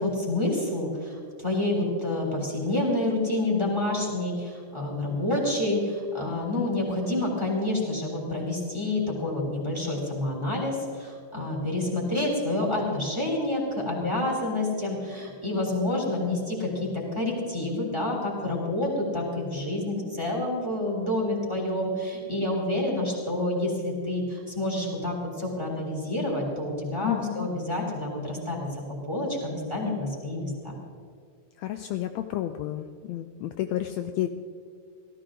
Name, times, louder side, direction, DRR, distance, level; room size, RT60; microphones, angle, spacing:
voice 1, 0.0-30.7, left 2 dB, 10° right, -2 dB, 3.2 m, -28 dB
voice 2, 27.0-27.5 31.6-34.3, left 13 dB, 85° left, 7 dB, 1.5 m, -31 dB
17.0 x 14.0 x 3.8 m, 2.1 s
omnidirectional pair, 3.6 m